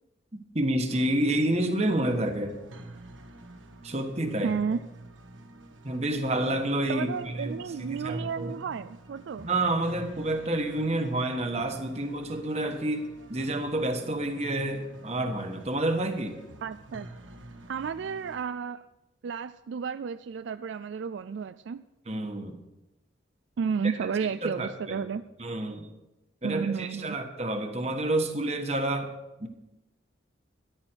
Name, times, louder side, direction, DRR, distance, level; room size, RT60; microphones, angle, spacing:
voice 1, 0.5-2.5 3.8-4.5 5.8-7.1 7.3-8.5 9.4-16.4 22.1-22.6 24.0-24.1 24.4-25.0 25.4-25.9 26.4-29.1 29.4-29.5, right 1 dB, 35° right, 6 dB, 1.3 m, -29 dB
sound 1, 0.9-18.5, right 1 dB, 85° right, 1.4 m, -48 dB
voice 2, 4.4-4.8 6.9-9.5 16.6-17.1 17.7-18.8 19.2-21.8 23.6-25.2 26.4-27.2, right 6 dB, 70° right, 13 dB, 0.3 m, -32 dB
13.5 x 11.5 x 4.6 m, 0.97 s
head